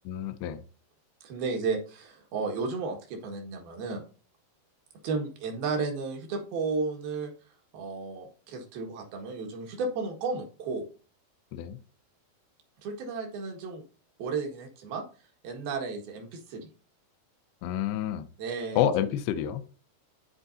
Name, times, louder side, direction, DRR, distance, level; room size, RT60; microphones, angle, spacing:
voice 1, 0.1-0.6 11.5-11.8 17.6-18.3 18.8-19.6, left 10 dB, 80° left, 2.5 m, -28 dB
voice 2, 1.2-4.0 5.0-7.3 7.7-10.9 12.8-13.8 14.2-15.0 15.4-16.7 18.4-18.8, right 4 dB, 70° right, 3.4 m, -33 dB
13.5 x 4.6 x 2.7 m
omnidirectional pair, 4.6 m